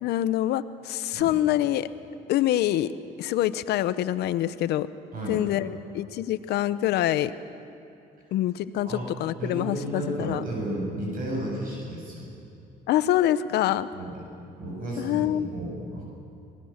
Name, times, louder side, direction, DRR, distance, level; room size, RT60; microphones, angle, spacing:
voice 1, 0.0-1.9 2.3-2.9 3.2-4.9 5.3-7.3 8.3-10.4 12.9-13.9 15.0-15.5, left 13 dB, 80° left, 14 dB, 0.9 m, -25 dB
voice 2, 9.4-12.3 13.9-14.2 14.6-16.0, right 1 dB, 55° right, -2 dB, 8.0 m, -33 dB
26.5 x 20.0 x 7.5 m, 2.7 s
cardioid pair, 110°, 17 cm